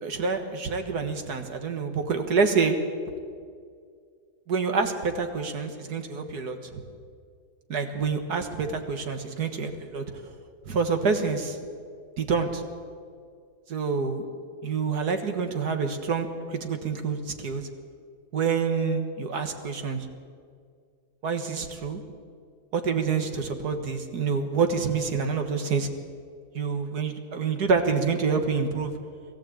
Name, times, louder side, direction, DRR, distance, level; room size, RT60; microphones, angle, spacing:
voice 1, 0.0-2.8 4.5-6.8 7.7-10.0 10.7-11.6 12.2-12.6 13.7-14.3 14.6-17.7 18.3-20.1 21.2-22.0 22.7-25.9 26.5-29.0, right 5 dB, 70° right, 6 dB, 2.0 m, -27 dB
21.5 x 14.5 x 8.6 m, 2.2 s
omnidirectional pair, 1.8 m